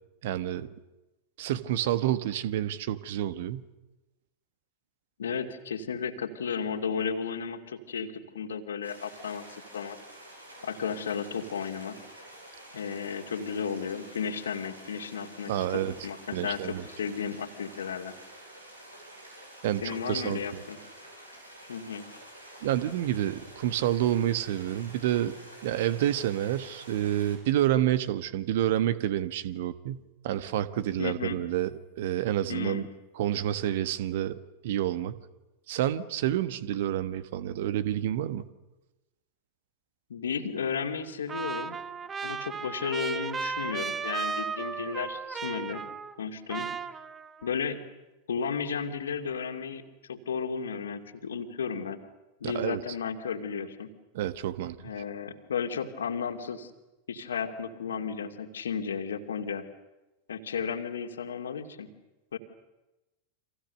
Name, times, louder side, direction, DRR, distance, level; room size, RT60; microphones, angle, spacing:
voice 1, 0.2-0.7 1.4-3.7 15.5-15.9 16.3-16.8 19.6-20.6 22.6-25.4 25.6-32.9 33.2-35.2 35.7-38.5 52.4-52.8 54.1-54.8, right 12 dB, 55° right, 14 dB, 1.3 m, -29 dB
voice 2, 5.2-10.0 10.6-12.0 12.7-18.2 19.8-20.8 21.7-22.1 31.0-31.4 32.5-32.9 40.1-41.8 42.2-45.8 46.2-46.7 47.4-47.8 48.3-49.8 50.1-52.0 52.4-53.9 54.8-56.7 57.1-59.7 60.3-61.9 62.3-62.4, left 6 dB, 65° left, 6 dB, 2.5 m, -34 dB
sound 1, 8.8-27.4, right 1 dB, 90° right, 7.1 m, -49 dB
Trumpet, 41.3-46.2 46.5-47.5, right 5 dB, 20° right, 1.2 m, -35 dB
30.0 x 26.0 x 6.7 m, 1.0 s
figure-of-eight pair, 90°, 0 cm